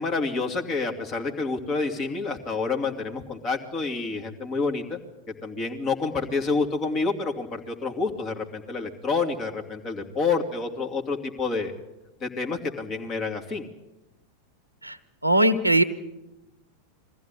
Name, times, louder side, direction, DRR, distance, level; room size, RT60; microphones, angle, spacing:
voice 1, 0.0-5.0 5.4-11.7 12.2-13.7, left 4 dB, 30° left, 3 dB, 2.7 m, -28 dB
voice 2, 15.2-15.8, right 1 dB, 85° right, 15 dB, 0.9 m, -19 dB
22.0 x 15.0 x 9.9 m, 1.0 s
figure-of-eight pair, 90°, 0 cm